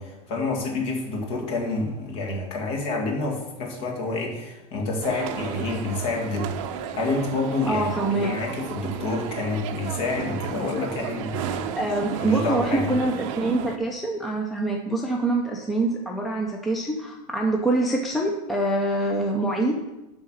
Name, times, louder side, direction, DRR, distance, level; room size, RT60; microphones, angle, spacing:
voice 1, 0.0-11.7 12.2-12.9, left 3 dB, 45° left, 0 dB, 2.1 m, -28 dB
sound 1, 5.0-13.8, right 9 dB, 50° right, 0.7 m, -33 dB
voice 2, 7.7-8.3 11.7-19.8, right 2 dB, ahead, 0 dB, 0.4 m, -25 dB
11.0 x 3.8 x 6.3 m, 1.0 s
supercardioid pair, 165°, 21 cm